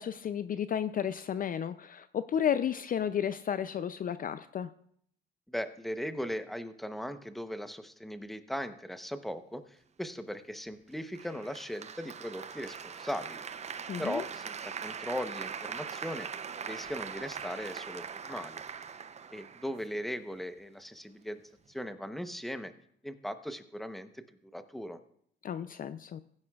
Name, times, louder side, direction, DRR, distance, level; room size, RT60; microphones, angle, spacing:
voice 1, 0.0-4.7 13.9-14.2 25.4-26.2, left 9 dB, 45° left, 13 dB, 0.4 m, -32 dB
voice 2, 5.5-13.5 14.0-16.3 16.7-18.6 19.3-21.4 21.7-22.7 23.0-24.2 24.5-25.0, equal, ahead, 9 dB, 0.8 m, -38 dB
Applause, 11.1-20.2, right 6 dB, 35° right, 0.5 m, -41 dB
16.0 x 9.6 x 2.3 m, 0.66 s
cardioid pair, 90°, 20 cm